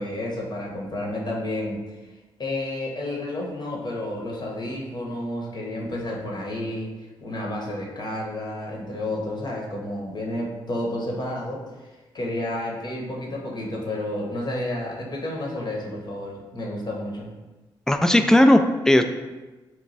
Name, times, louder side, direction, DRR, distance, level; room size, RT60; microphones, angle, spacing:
voice 1, 0.0-1.8 2.4-6.9 7.2-11.6 12.1-17.3, left 1 dB, 45° left, -2 dB, 0.9 m, -30 dB
voice 2, 17.9-19.1, left 1 dB, 5° left, 7 dB, 0.3 m, -17 dB
3.1 x 2.2 x 3.9 m, 1.2 s
supercardioid pair, 55°, 10 cm